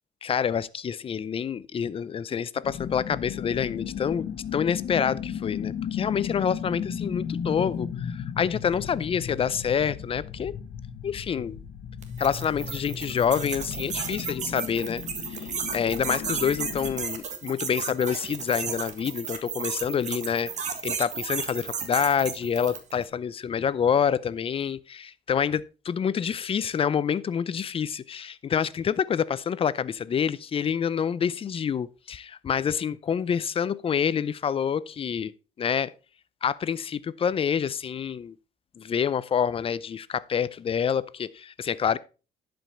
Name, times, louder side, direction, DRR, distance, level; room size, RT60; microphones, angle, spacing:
voice 1, 0.2-10.5 11.0-11.6 12.2-15.0 15.3-35.3 35.6-35.9 36.4-38.4 38.8-42.0, left 7 dB, 35° left, 0.5 m, -27 dB
sound 1, 2.6-17.0, left 8 dB, 60° left, 1.3 m, -35 dB
sound 2, 12.0-23.0, right 6 dB, 45° right, 1.6 m, -34 dB
11.0 x 5.2 x 4.2 m
cardioid pair, 110°, 17 cm